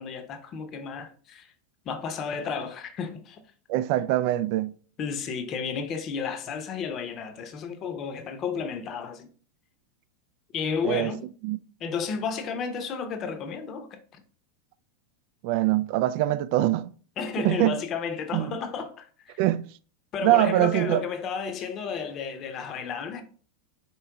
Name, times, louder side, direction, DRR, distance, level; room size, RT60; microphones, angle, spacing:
voice 1, 0.0-1.5 1.9-3.4 5.0-9.3 10.5-11.2 11.8-14.2 17.2-19.4 20.1-23.2, left 6 dB, 40° left, 0.7 m, -32 dB
voice 2, 3.7-4.7 10.8-11.1 11.4-11.6 15.4-16.9 17.4-17.8 18.3-18.6 19.4-19.7 20.2-21.0, right 14 dB, 55° right, 0.3 m, -23 dB
4.5 x 2.9 x 3.7 m
hypercardioid pair, 100°, 0 cm